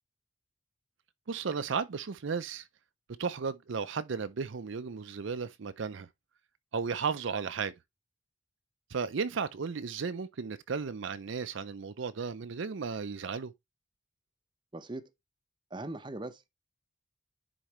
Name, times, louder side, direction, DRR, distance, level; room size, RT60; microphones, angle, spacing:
voice 1, 1.3-2.7 3.2-6.1 6.7-7.7 8.9-13.5, right 5 dB, 70° right, 0.5 m, -34 dB
voice 2, 14.7-15.1 15.7-16.5, right 2 dB, 25° right, 0.6 m, -40 dB
10.0 x 4.4 x 3.0 m
head